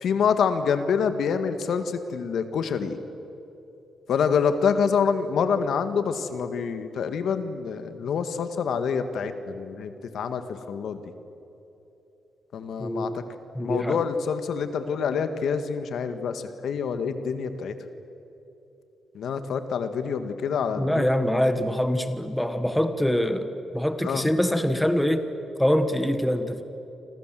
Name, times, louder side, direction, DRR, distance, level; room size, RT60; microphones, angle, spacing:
voice 1, 0.0-3.0 4.1-11.0 12.5-13.2 13.6-17.7 19.2-21.1 24.0-24.2, left 6 dB, 70° left, 9 dB, 1.8 m, -26 dB
voice 2, 12.8-13.1 13.5-14.0 20.8-23.5 23.7-25.2 25.6-26.6, equal, 5° left, 9 dB, 1.4 m, -24 dB
29.0 x 26.5 x 7.7 m, 3.0 s
cardioid pair, 140°, 0 cm